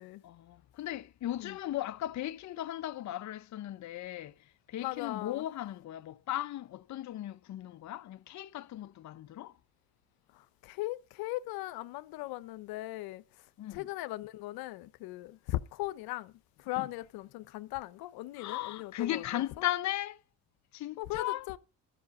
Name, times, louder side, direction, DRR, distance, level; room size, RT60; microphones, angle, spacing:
voice 1, 0.2-4.3 4.7-9.5 13.6-13.9 16.8-16.9 18.4-20.2 20.7-21.5, left 13 dB, 50° left, 0.7 m, -37 dB
voice 2, 4.8-5.4 10.3-19.4 21.0-21.6, left 17 dB, 85° left, 0.9 m, -39 dB
13.5 x 5.7 x 8.1 m
supercardioid pair, 85°, 36 cm